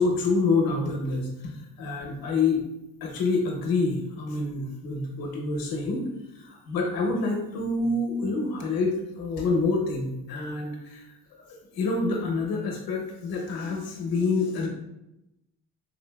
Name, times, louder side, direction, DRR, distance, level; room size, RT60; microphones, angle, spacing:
voice 1, 0.0-2.7 3.0-6.0 6.3-11.1 11.4-14.7, left 3 dB, 65° left, 1 dB, 0.8 m, -27 dB
3.8 x 2.6 x 2.2 m, 0.90 s
cardioid pair, 140°, 38 cm